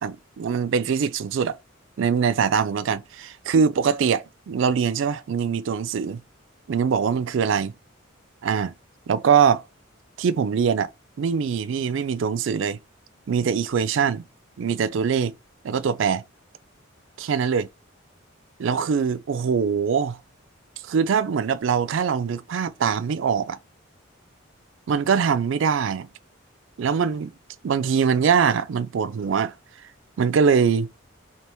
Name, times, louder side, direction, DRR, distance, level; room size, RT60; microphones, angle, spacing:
voice 1, 0.0-1.6 2.0-6.2 6.7-7.7 8.4-8.7 9.1-9.6 10.2-10.9 11.2-12.8 13.3-14.2 14.6-15.3 15.6-16.2 17.2-17.7 18.6-20.2 20.8-23.6 24.9-26.1 26.8-27.3 27.6-29.5 30.2-30.9, right 6 dB, 65° right, 0.4 m, -22 dB
3.4 x 2.9 x 4.3 m
head